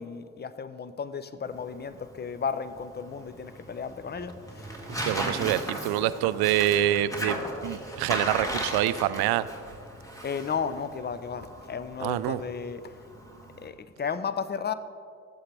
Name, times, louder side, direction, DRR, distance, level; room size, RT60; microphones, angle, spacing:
voice 1, 0.0-5.1 10.2-13.0 13.6-14.7, left 6 dB, 25° left, 0.6 m, -34 dB
Tearing, 1.4-13.7, equal, 10° left, 1.7 m, -37 dB
Accelerating revving vroom, 3.4-9.4, right 3 dB, 20° right, 0.8 m, -48 dB
voice 2, 5.0-9.5 12.0-12.4, right 12 dB, 75° right, 0.5 m, -26 dB
13.5 x 8.0 x 3.4 m
supercardioid pair, 65°, 38 cm